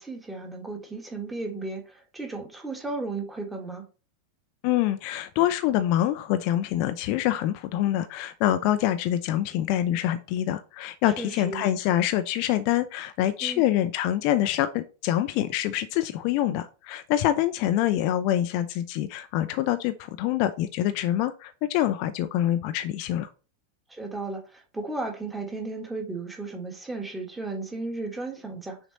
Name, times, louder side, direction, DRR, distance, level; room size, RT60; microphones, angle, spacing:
voice 1, 0.0-3.8 11.2-11.6 13.4-13.6 23.9-28.8, right 3 dB, 10° right, 1.5 m, -34 dB
voice 2, 4.6-23.3, left 12 dB, 45° left, 0.5 m, -25 dB
6.0 x 4.1 x 4.0 m
figure-of-eight pair, 90°, 0 cm